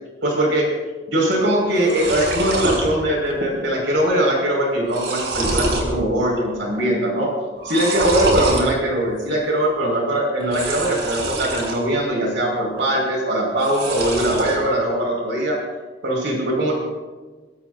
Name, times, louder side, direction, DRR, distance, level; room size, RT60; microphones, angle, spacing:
voice 1, 0.2-0.7 1.1-7.3 7.6-15.6 16.0-16.7, right 1 dB, 90° right, -1 dB, 5.5 m, -21 dB
sound 1, 1.3-1.4 1.6-2.8 3.3-3.7 4.0-4.1 4.6-5.9 6.4-6.8 7.6-8.6 10.4-11.8 12.2-12.8 13.5-14.6, right 2 dB, 65° right, 4.1 m, -25 dB
23.0 x 21.5 x 2.7 m, 1.3 s
head